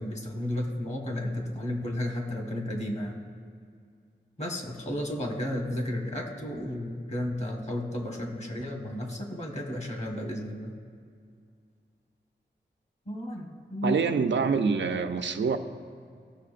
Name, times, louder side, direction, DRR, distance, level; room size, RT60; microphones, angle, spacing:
voice 1, 0.0-3.1 4.4-10.7 13.0-14.2, left 1 dB, 35° left, 2 dB, 1.5 m, -33 dB
voice 2, 13.8-15.6, right 5 dB, 80° right, 7 dB, 0.6 m, -26 dB
17.0 x 6.4 x 2.5 m, 2.3 s
wide cardioid pair, 85°, 19 cm